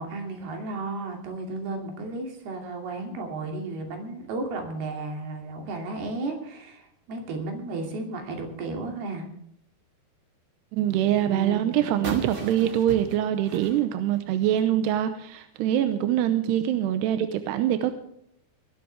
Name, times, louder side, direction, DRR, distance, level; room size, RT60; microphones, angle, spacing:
voice 1, 0.0-9.3 11.2-11.6, right 3 dB, 70° right, 3 dB, 4.5 m, -33 dB
voice 2, 10.7-17.9, right 11 dB, 90° right, 9 dB, 2.9 m, -24 dB
sound 1, 12.0-14.8, right 2 dB, 35° right, 2.6 m, -38 dB
19.0 x 13.5 x 3.4 m, 0.74 s
omnidirectional pair, 4.8 m